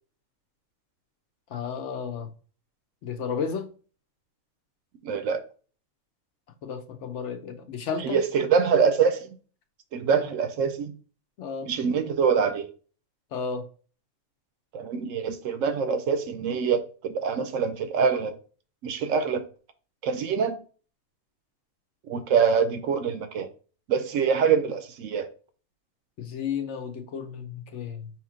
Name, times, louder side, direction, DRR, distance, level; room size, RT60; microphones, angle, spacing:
voice 1, 1.5-2.3 3.0-3.7 6.6-8.2 11.4-11.7 13.3-13.6 26.2-28.1, left 6 dB, 65° left, 0.9 m, -33 dB
voice 2, 5.0-5.4 8.0-9.3 9.9-10.9 11.6-12.7 14.7-18.4 18.8-19.4 20.0-20.6 22.1-23.5 23.9-25.3, right 6 dB, 70° right, 0.9 m, -24 dB
4.9 x 2.9 x 3.7 m
omnidirectional pair, 1.5 m